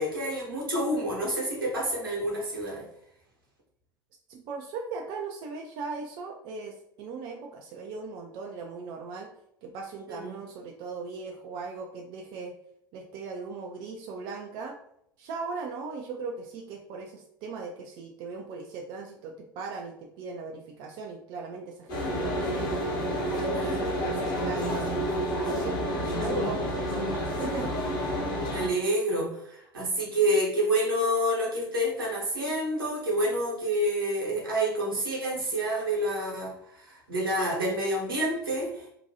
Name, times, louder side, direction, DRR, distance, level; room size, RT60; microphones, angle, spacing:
voice 1, 0.0-2.8 10.1-10.3 23.5-23.8 26.0-26.3 28.5-38.8, right 1 dB, 80° right, -4 dB, 1.0 m, -28 dB
voice 2, 4.3-9.3 9.6-12.5 12.9-14.8 15.2-22.7 23.2-24.9 25.3-27.1 27.3-27.7, right 4 dB, 40° right, 2 dB, 0.4 m, -38 dB
sound 1, 21.9-28.7, equal, 40° left, 1.0 m, -29 dB
2.7 x 2.2 x 2.7 m, 0.75 s
figure-of-eight pair, 75°, 12 cm